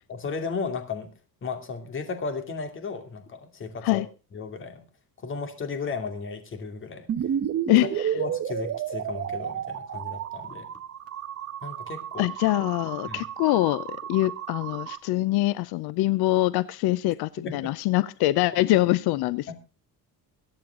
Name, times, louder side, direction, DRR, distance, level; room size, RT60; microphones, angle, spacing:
voice 1, 0.1-1.1 1.4-4.0 4.3-4.8 5.2-7.1 8.1-10.7 11.6-12.3 13.1-13.2 17.4-17.7 19.5-19.6, left 4 dB, 35° left, 7 dB, 2.8 m, -34 dB
sound 1, 7.1-15.0, right 9 dB, 40° right, 1.4 m, -32 dB
voice 2, 7.7-8.1 12.2-19.5, left 17 dB, 90° left, 18 dB, 0.7 m, -24 dB
23.0 x 9.0 x 3.7 m, 0.31 s
cardioid pair, 160°, 37 cm